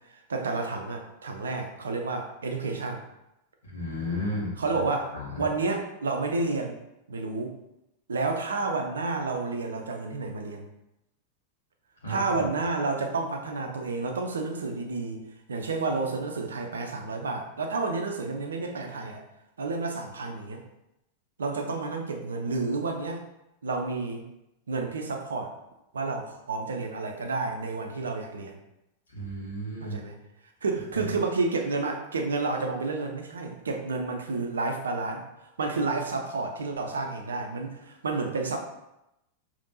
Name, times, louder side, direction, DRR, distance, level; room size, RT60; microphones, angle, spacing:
voice 1, 0.3-3.0 4.6-6.8 7.1-7.5 8.1-10.7 12.1-15.2 15.5-19.2 19.6-20.6 21.4-23.2 23.6-24.3 24.7-25.5 25.9-28.6 29.8-30.2 30.6-38.6, right 3 dB, 70° right, 3 dB, 0.6 m, -30 dB
voice 2, 3.6-4.8 5.1-5.4 12.0-12.2 29.1-30.0 30.9-31.0, left 1 dB, 70° left, -5 dB, 1.1 m, -33 dB
5.1 x 2.8 x 2.7 m, 0.88 s
figure-of-eight pair, 90°, 0 cm